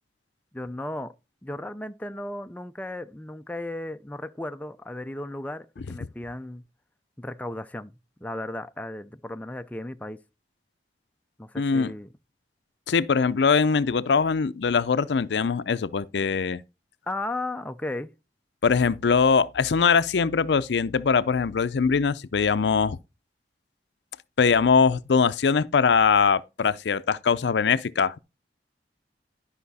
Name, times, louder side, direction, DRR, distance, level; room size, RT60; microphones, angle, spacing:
voice 1, 0.5-1.1 1.4-6.6 7.2-10.2 11.4-12.1 17.1-18.1, left 1 dB, 10° left, 0.4 m, -35 dB
voice 2, 11.6-11.9 12.9-16.6 18.6-23.0 24.4-28.1, left 5 dB, 80° left, 0.5 m, -22 dB
11.5 x 5.7 x 4.1 m
head